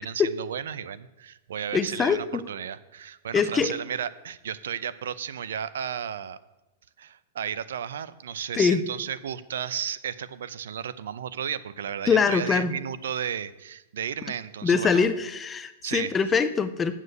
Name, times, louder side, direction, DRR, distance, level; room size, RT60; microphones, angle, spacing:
voice 1, 0.0-6.4 7.0-15.1 15.8-16.1, right 8 dB, 90° right, 16 dB, 0.6 m, -33 dB
voice 2, 1.7-2.4 3.3-3.7 8.5-8.8 12.1-12.7 14.6-16.9, left 5 dB, 10° left, 11 dB, 0.4 m, -23 dB
8.1 x 7.4 x 7.9 m, 1.0 s
supercardioid pair, 180°, 0 cm